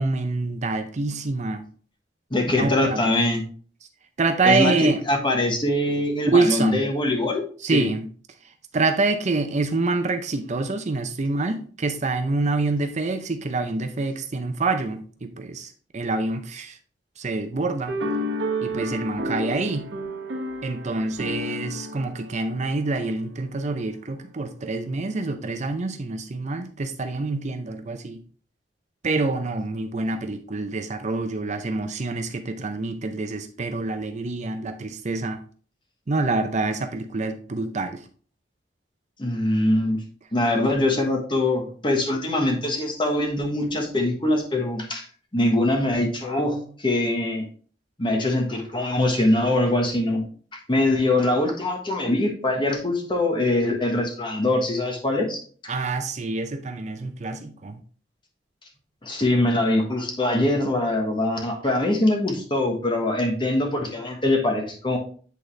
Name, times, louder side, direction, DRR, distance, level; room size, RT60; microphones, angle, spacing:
voice 1, 0.0-1.6 2.6-3.1 4.2-5.0 6.3-6.8 7.6-8.1 8.7-16.8 17.2-17.9 18.6-19.9 20.6-28.2 29.0-35.4 36.1-38.0 55.7-57.8, right 3 dB, 40° right, 7 dB, 0.6 m, -26 dB
voice 2, 2.3-3.4 4.4-7.9 39.2-40.0 40.3-45.0 45.3-47.4 48.0-50.2 50.5-55.4 59.0-65.0, left 1 dB, 30° left, 2 dB, 1.3 m, -23 dB
sound 1, 17.9-23.4, equal, 80° right, 1.0 m, -31 dB
8.3 x 4.0 x 3.2 m, 0.43 s
head